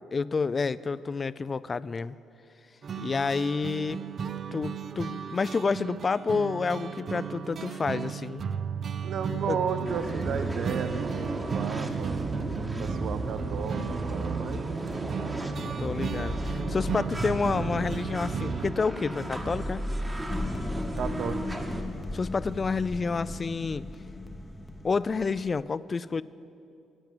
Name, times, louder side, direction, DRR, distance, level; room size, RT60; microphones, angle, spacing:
voice 1, 0.1-2.2 3.0-4.0 4.5-8.4 9.5-9.6 15.8-19.8 22.1-23.8 24.8-26.2, left 4 dB, 30° left, 17 dB, 0.3 m, -29 dB
sound 1, 2.8-18.7, right 7 dB, 50° right, 0.4 m, -35 dB
voice 2, 9.0-12.2 12.8-14.7 20.9-21.5, right 6 dB, 65° right, 9 dB, 0.8 m, -33 dB
sound 2, 9.8-21.8, right 1 dB, 15° right, 1.2 m, -34 dB
sound 3, 20.3-25.7, left 2 dB, 15° left, 0.7 m, -37 dB
10.5 x 9.1 x 9.3 m, 2.6 s
cardioid pair, 105°, 0 cm